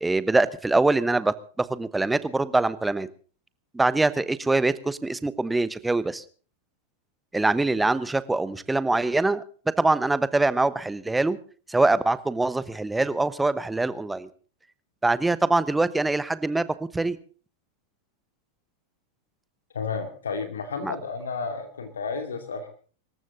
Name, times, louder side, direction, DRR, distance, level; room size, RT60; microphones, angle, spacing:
voice 1, 0.0-3.1 3.7-6.2 7.3-9.4 9.8-11.4 11.7-14.3 15.0-16.7 16.9-17.2 20.8-21.0, right 2 dB, 10° right, 16 dB, 1.1 m, -24 dB
voice 2, 19.7-22.7, left 5 dB, 70° left, 7 dB, 2.4 m, -32 dB
25.5 x 14.0 x 3.8 m, 0.41 s
figure-of-eight pair, 90°, 0 cm